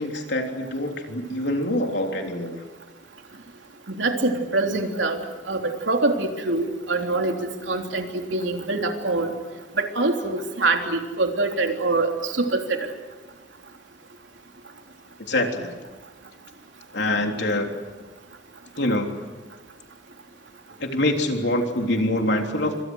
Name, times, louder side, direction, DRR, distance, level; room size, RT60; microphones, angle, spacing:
voice 1, 0.0-2.6 15.3-15.8 16.9-17.7 18.8-19.4 20.8-22.8, left 1 dB, 70° left, 3 dB, 3.5 m, -25 dB
voice 2, 3.9-5.2 5.5-9.3 9.8-12.8, right 2 dB, 85° right, 3 dB, 3.4 m, -24 dB
28.0 x 25.5 x 6.4 m, 1.3 s
head